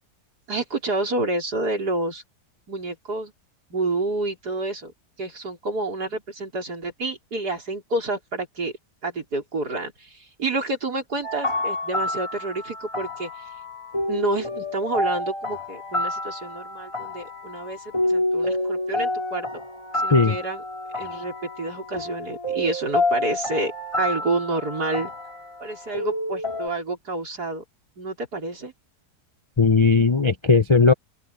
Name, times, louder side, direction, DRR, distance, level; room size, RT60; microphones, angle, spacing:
voice 1, 0.5-2.2 2.7-3.3 3.7-4.9 5.2-8.7 9.0-13.3 14.1-19.5 19.9-20.6 20.9-25.1 25.6-27.6 28.0-28.7, right 2 dB, 75° right, 5.2 m, -29 dB
sound 1, 11.2-26.7, left 1 dB, 15° left, 3.6 m, -29 dB
voice 2, 29.6-30.9, left 4 dB, 40° left, 0.4 m, -17 dB
open air
omnidirectional pair, 1.7 m